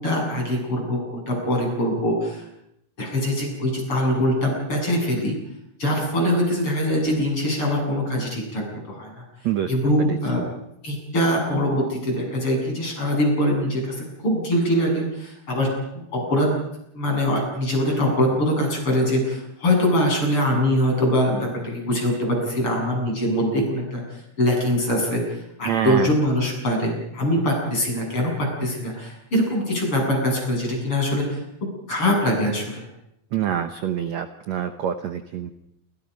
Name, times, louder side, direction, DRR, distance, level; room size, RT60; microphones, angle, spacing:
voice 1, 0.0-2.4 3.0-5.4 5.8-9.2 9.7-10.4 10.8-15.7 16.1-16.6 17.0-31.4 31.9-32.8, equal, 30° left, 0 dB, 8.9 m, -23 dB
voice 2, 10.0-10.5 25.6-26.1 33.3-35.5, right 10 dB, 80° right, 8 dB, 1.5 m, -26 dB
28.5 x 26.0 x 5.4 m, 0.80 s
omnidirectional pair, 4.7 m